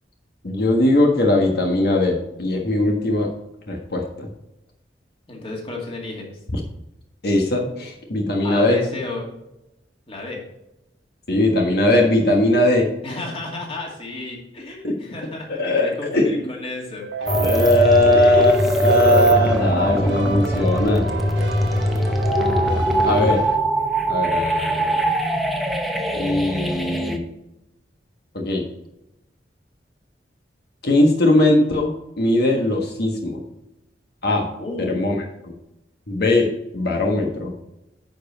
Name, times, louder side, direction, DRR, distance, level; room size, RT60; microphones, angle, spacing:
voice 1, 0.4-3.3 3.7-4.3 6.5-6.6 7.2-8.8 11.3-12.9 14.8-14.9 15.6-16.5 17.4-21.0 23.0-23.5 24.1-25.0 26.1-27.3 28.3-28.6 30.8-31.9 32.2-33.4 34.2-34.5 34.8-35.1 36.1-37.5, left 1 dB, 60° left, 1 dB, 1.4 m, -19 dB
voice 2, 5.3-6.4 8.4-9.3 10.1-10.4 13.0-17.1 18.1-18.5 34.6-35.1, left 2 dB, 30° left, -1 dB, 2.3 m, -32 dB
Keyboard (musical), 17.0-23.6, right 4 dB, 85° right, 1.2 m, -31 dB
sound 1, 17.3-27.2, equal, ahead, 0.9 m, -22 dB
9.9 x 5.3 x 4.1 m, 0.89 s
head